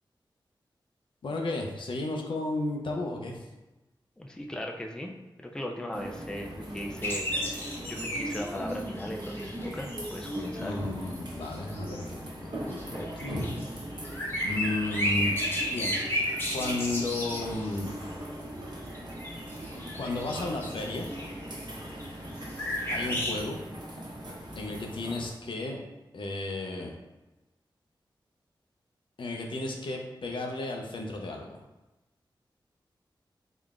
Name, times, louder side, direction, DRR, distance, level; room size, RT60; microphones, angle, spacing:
voice 1, 1.2-3.4 10.6-13.4 13.7-13.9 14.4-15.4 15.7-15.9 16.5-17.9 20.0-21.1 22.9-23.6 24.5-25.8 26.1-26.9 29.2-31.5, left 2 dB, 80° left, 1 dB, 0.5 m, -33 dB
voice 2, 4.2-5.1 5.4-10.8, left 1 dB, 10° left, 1 dB, 0.3 m, -38 dB
sound 1, 5.9-25.3, equal, 60° right, 0.9 m, -40 dB
sound 2, 7.0-10.6 11.4-12.0 12.7-17.9 18.9-22.3 22.6-23.4, equal, 25° left, 0.8 m, -33 dB
3.6 x 3.2 x 2.4 m, 1.1 s
wide cardioid pair, 105°, 8 cm